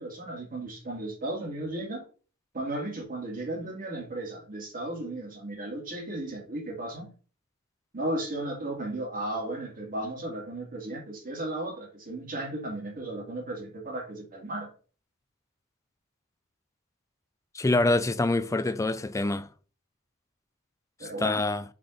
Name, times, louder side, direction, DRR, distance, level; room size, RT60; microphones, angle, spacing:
voice 1, 0.0-2.0 2.5-7.1 7.9-14.7 21.0-21.4, right 1 dB, 40° right, 2.1 m, -35 dB
voice 2, 17.5-19.5 21.2-21.6, left 2 dB, 15° left, 0.4 m, -25 dB
5.9 x 3.5 x 5.1 m
head